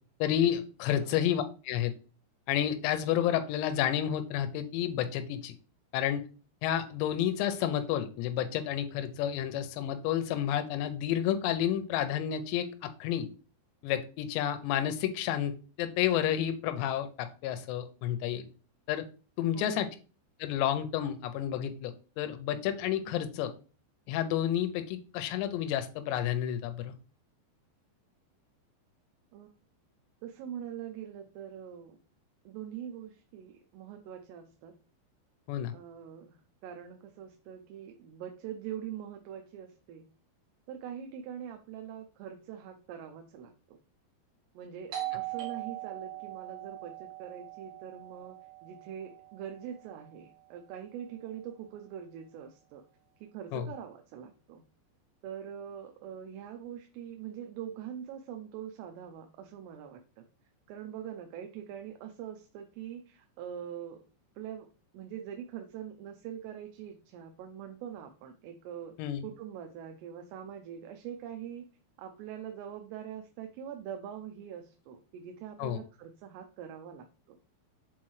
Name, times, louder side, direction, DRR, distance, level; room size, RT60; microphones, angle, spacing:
voice 1, 0.2-1.9 2.5-5.5 5.9-6.2 6.6-13.3 13.8-18.5 18.9-19.0 19.4-19.9 20.4-23.5 24.1-26.9 35.5-35.7 53.5-53.6 69.0-69.2 75.6-75.8, left 10 dB, 90° left, 8 dB, 2.9 m, -30 dB
voice 2, 30.2-32.0 32.5-34.7 35.7-36.4 36.6-40.1 40.7-43.8 44.5-52.8 53.2-54.6 55.2-60.2 60.7-64.0 64.4-64.7 64.9-68.9 69.2-71.7 72.0-77.4, right 9 dB, 85° right, 5 dB, 2.8 m, -43 dB
Doorbell, 44.9-50.3, right 15 dB, 70° right, 2.2 m, -41 dB
7.3 x 4.3 x 3.1 m, 0.36 s
omnidirectional pair, 4.9 m